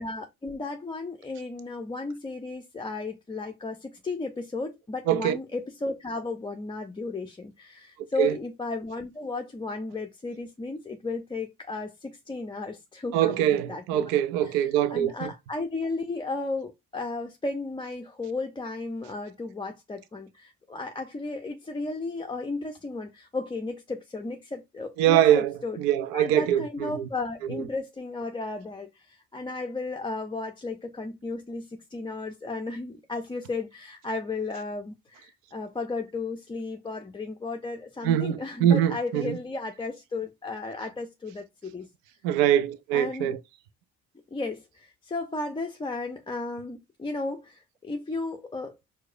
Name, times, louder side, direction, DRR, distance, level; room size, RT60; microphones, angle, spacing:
voice 1, 0.0-14.1 14.4-25.8 26.1-41.9 42.9-43.4 44.3-48.7, left 3 dB, 10° left, 0.4 m, -34 dB
voice 2, 5.1-5.4 8.2-8.4 13.1-15.3 25.0-27.0 27.5-27.6 38.0-39.4 42.2-43.4, right 11 dB, 75° right, 0.5 m, -23 dB
4.6 x 2.1 x 2.4 m
hypercardioid pair, 50°, 42 cm